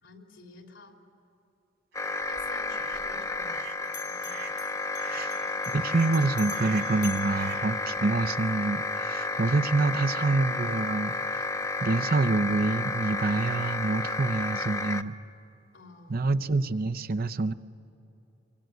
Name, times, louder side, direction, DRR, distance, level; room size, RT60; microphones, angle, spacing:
voice 1, 0.0-1.0 2.3-3.7 4.0-4.4 5.1-5.6 15.7-16.6, left 2 dB, 85° left, 2 dB, 3.4 m, -51 dB
sound 1, 1.9-15.0, left 3 dB, 15° left, 0.7 m, -32 dB
sound 2, 1.9-2.2 2.7-3.0 3.5-3.8 4.2-4.6 5.0-5.3 5.8-6.2 6.5-7.0 7.3-7.7, right 8 dB, 70° right, 3.3 m, -44 dB
Bell, 2.2-3.6 3.8-8.3, left 8 dB, 60° left, 1.8 m, -47 dB
voice 2, 5.7-11.5 11.8-15.1 16.1-17.5, right 3 dB, 55° right, 12 dB, 0.7 m, -27 dB
25.5 x 24.5 x 9.3 m, 2.8 s
head